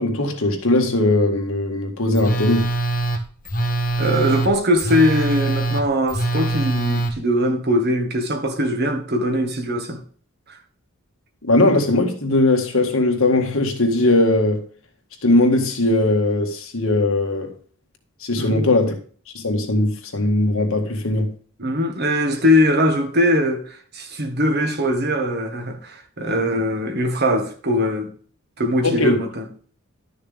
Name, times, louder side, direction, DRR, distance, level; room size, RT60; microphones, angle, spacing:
voice 1, 0.0-2.7 11.4-14.7 15.2-17.5 18.2-19.0 19.3-21.4 26.5-26.6 28.8-29.2, left 2 dB, 70° left, 1.9 m, -19 dB
Telephone, 2.1-7.1, right 2 dB, 40° left, 1.2 m, -23 dB
voice 2, 4.0-10.0 10.5-10.6 18.4-18.7 21.6-28.1 28.6-29.5, equal, 50° right, 1.7 m, -21 dB
12.0 x 6.5 x 3.5 m
head